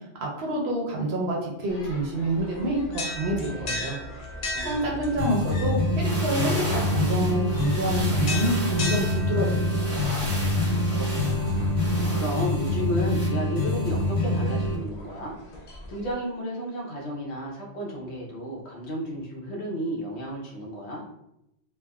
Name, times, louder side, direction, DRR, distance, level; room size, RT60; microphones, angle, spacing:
voice 1, 0.2-4.0 4.6-9.5 9.9-10.1, right 1 dB, 65° right, -2 dB, 0.9 m, -28 dB
sound 1, 1.7-16.1, left 1 dB, 85° left, 0.3 m, -38 dB
voice 2, 4.5-5.1 10.5-15.4 15.6-21.0, equal, 65° left, -2 dB, 1.0 m, -33 dB
sound 2, 5.2-14.8, left 1 dB, 20° left, 0.7 m, -25 dB
sound 3, 5.8-13.3, right 1 dB, 15° right, 0.7 m, -36 dB
3.3 x 2.0 x 2.2 m, 0.83 s
omnidirectional pair, 1.2 m